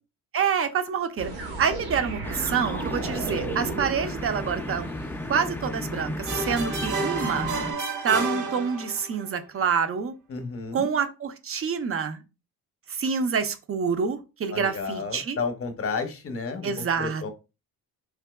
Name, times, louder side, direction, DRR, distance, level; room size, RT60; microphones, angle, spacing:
voice 1, 0.3-1.3 1.6-4.9 5.3-7.5 8.0-10.1 10.7-12.2 12.9-15.4 16.6-17.3, right 6 dB, 40° right, 9 dB, 0.5 m, -27 dB
sound 1, 1.2-5.1, right 3 dB, 80° right, 1.3 m, -34 dB
sound 2, 2.2-7.7, left 1 dB, 5° left, 0.3 m, -34 dB
sound 3, 6.3-9.2, right 3 dB, 55° right, 0.8 m, -30 dB
voice 2, 10.3-10.9 14.5-17.3, left 4 dB, 40° left, 8 dB, 0.7 m, -32 dB
3.6 x 2.8 x 2.2 m, 0.29 s
cardioid pair, 90°, 37 cm